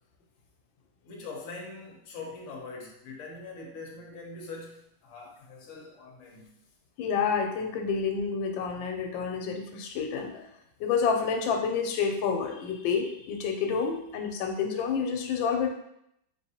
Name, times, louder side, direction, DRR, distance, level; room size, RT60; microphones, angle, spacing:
voice 1, 1.0-6.6, left 3 dB, 55° left, -1 dB, 0.9 m, -43 dB
voice 2, 7.0-10.5 10.8-15.7, left 6 dB, 90° left, 4 dB, 1.3 m, -29 dB
3.7 x 2.7 x 2.8 m, 0.76 s
omnidirectional pair, 2.0 m